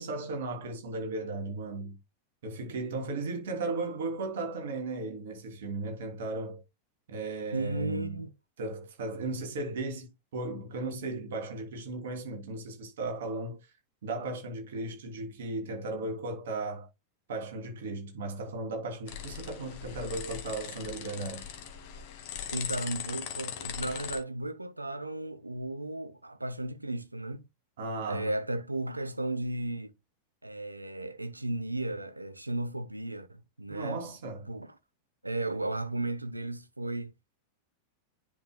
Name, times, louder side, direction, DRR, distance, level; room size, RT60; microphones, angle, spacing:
voice 1, 0.0-2.0 2.4-6.6 7.1-8.2 8.6-13.7 14.0-16.9 17.3-21.5 27.8-28.3 33.7-34.5, right 2 dB, 60° right, 2.9 m, -36 dB
voice 2, 7.5-8.3 22.5-27.5 28.1-29.9 30.4-34.1 34.5-34.8 35.2-37.1, right 2 dB, 85° right, 0.9 m, -35 dB
sound 1, 19.1-24.2, left 9 dB, 45° left, 1.9 m, -40 dB
10.0 x 5.5 x 2.2 m
figure-of-eight pair, 90°, 0 cm